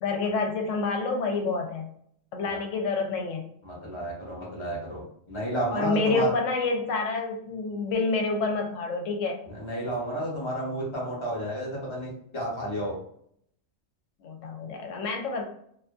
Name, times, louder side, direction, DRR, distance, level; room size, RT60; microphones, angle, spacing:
voice 1, 0.0-1.9 2.3-3.4 5.7-9.4 14.2-15.4, left 3 dB, 75° left, 2 dB, 0.9 m, -28 dB
voice 2, 3.6-6.3 9.5-13.0, equal, 25° left, -5 dB, 0.8 m, -32 dB
2.5 x 2.4 x 2.3 m, 0.66 s
omnidirectional pair, 1.4 m